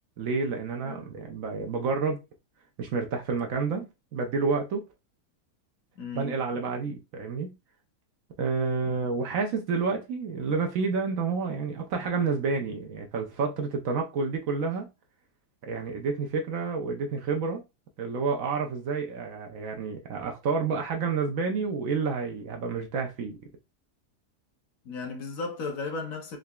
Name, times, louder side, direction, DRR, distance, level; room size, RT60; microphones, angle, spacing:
voice 1, 0.2-2.2 2.8-4.8 6.1-7.6 8.4-14.9 15.6-17.6 18.0-23.4, right 4 dB, 65° right, 0.9 m, -29 dB
voice 2, 6.0-6.7 8.9-9.0 24.8-26.4, left 4 dB, 65° left, 1.1 m, -36 dB
3.8 x 3.2 x 2.2 m
omnidirectional pair, 1.7 m